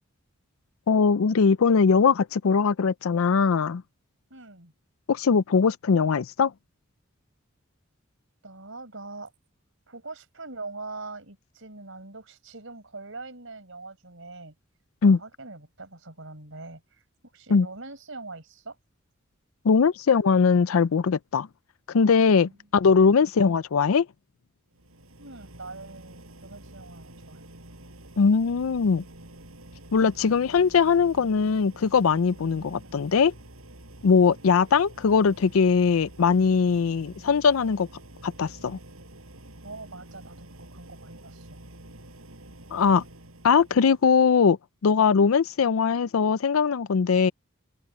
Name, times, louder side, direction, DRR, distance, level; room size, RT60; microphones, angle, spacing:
voice 1, 0.9-3.8 5.1-6.5 15.0-15.2 17.5-17.7 19.6-21.5 21.9-24.1 28.2-29.0 29.9-33.3 34.0-37.9 38.2-38.8 42.7-43.0 43.4-44.6 44.8-47.3, left 5 dB, 80° left, 0.5 m, -21 dB
voice 2, 4.3-4.7 8.4-9.3 9.9-14.5 15.0-18.8 22.4-22.7 23.2-23.3 25.2-27.4 32.8-33.0 39.6-41.6 45.2-45.4, right 3 dB, 65° right, 4.9 m, -43 dB
sound 1, 24.7-44.1, right 1 dB, 85° right, 7.1 m, -48 dB
open air
head